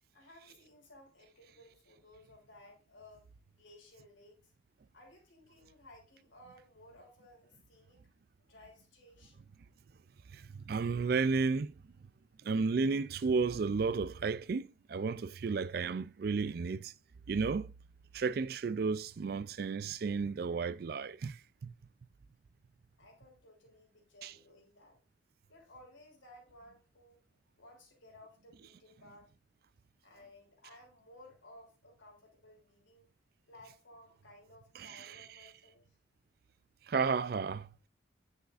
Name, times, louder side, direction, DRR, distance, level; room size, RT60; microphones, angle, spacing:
voice 1, 0.1-3.3 3.5-4.4 4.9-8.0 8.4-9.5 23.0-25.0 25.5-27.2 27.6-29.3 30.0-33.1 33.5-35.9, left 1 dB, 90° left, 3.2 m, -58 dB
voice 2, 10.3-11.7 12.4-16.9 17.3-17.7 18.1-21.7 24.2-24.3 34.8-35.1 36.9-37.7, right 4 dB, 50° right, 0.4 m, -33 dB
9.4 x 6.4 x 2.5 m
head